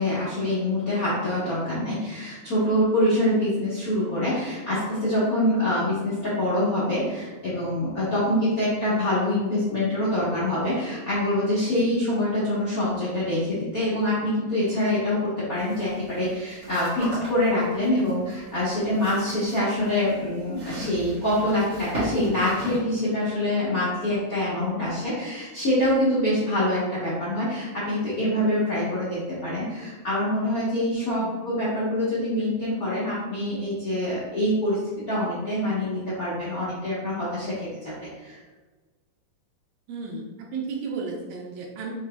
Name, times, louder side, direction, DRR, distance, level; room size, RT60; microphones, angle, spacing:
voice 1, 0.0-37.7 38.0-38.4, left 1 dB, 85° left, -10 dB, 0.7 m, -25 dB
sound 1, 15.6-22.8, equal, 50° right, 1.6 m, -37 dB
voice 2, 30.9-31.3 39.9-41.9, right 4 dB, 80° right, 0 dB, 2.0 m, -34 dB
5.8 x 3.3 x 2.2 m, 1.3 s
omnidirectional pair, 3.3 m